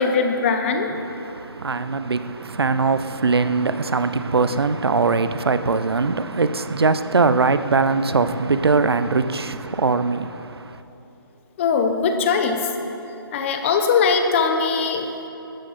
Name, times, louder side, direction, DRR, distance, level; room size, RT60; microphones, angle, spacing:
voice 1, 0.0-1.0 11.6-12.7 13.3-15.1, left 5 dB, 30° left, 1.1 m, -20 dB
voice 2, 1.0-10.8, right 4 dB, 90° right, 0.8 m, -21 dB
16.0 x 13.0 x 4.3 m
hypercardioid pair, 155°, 13 cm